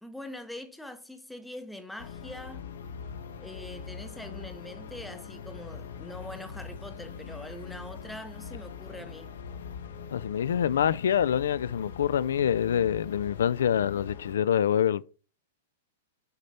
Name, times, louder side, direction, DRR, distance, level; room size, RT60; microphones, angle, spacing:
voice 1, 0.0-2.7 3.4-9.3, left 1 dB, ahead, 0.6 m, -43 dB
sound 1, 2.0-14.3, left 6 dB, 70° left, 1.0 m, -42 dB
voice 2, 10.1-15.0, left 9 dB, 90° left, 0.3 m, -26 dB
6.7 x 4.3 x 5.3 m
supercardioid pair, 175°, 0 cm